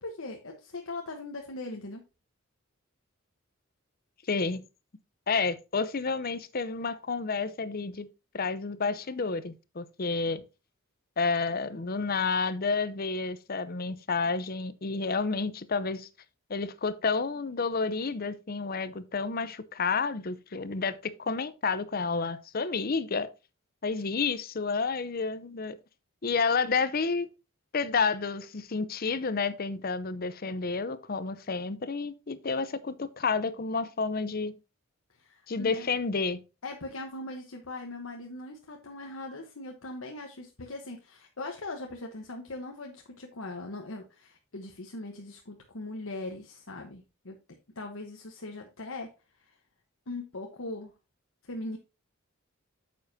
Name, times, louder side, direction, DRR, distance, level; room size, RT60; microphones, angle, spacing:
voice 1, 0.0-2.0 35.1-35.9 36.6-47.4 47.7-49.1 49.4-49.5 50.1-50.9 51.4-51.8, left 2 dB, 75° left, 1.1 m, -40 dB
voice 2, 4.3-4.6 5.3-8.1 8.3-10.4 11.2-16.1 16.5-23.3 23.8-25.8 26.2-27.3 27.7-34.5 35.5-36.4, left 4 dB, 45° left, 0.7 m, -30 dB
8.9 x 7.3 x 2.7 m
head